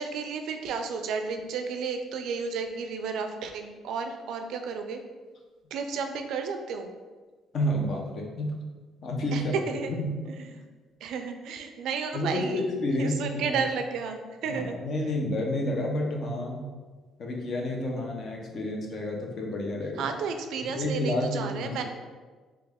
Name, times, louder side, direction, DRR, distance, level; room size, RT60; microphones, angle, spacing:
voice 1, 0.0-5.0 5.7-6.9 9.3-9.4 9.7-9.9 10.3-10.6 11.0-12.7 13.0-14.8 20.0-21.8, right 5 dB, 75° right, 6 dB, 0.3 m, -32 dB
voice 2, 7.5-8.6 9.0-10.1 12.1-13.6 14.5-16.7 17.2-20.0 20.8-21.8, left 1 dB, 55° left, 0 dB, 0.6 m, -30 dB
3.1 x 2.3 x 3.4 m, 1.4 s
cardioid pair, 105°, 0 cm